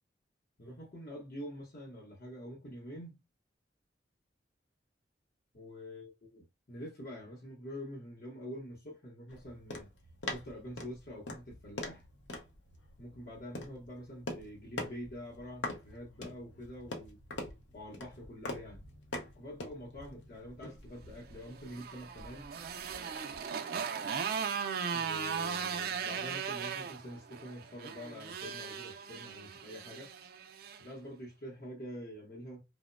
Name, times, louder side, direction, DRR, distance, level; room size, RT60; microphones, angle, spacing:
voice 1, 0.6-3.2 5.5-9.9 10.3-12.0 13.0-17.2 17.7-18.8 19.3-22.5 24.9-30.1 30.8-32.6, equal, 55° left, 0.8 m, -46 dB
sound 1, 9.3-23.5, left 2 dB, 85° left, 0.7 m, -45 dB
Motorcycle, 21.4-30.8, right 6 dB, 55° right, 0.3 m, -38 dB
2.9 x 2.0 x 2.4 m
head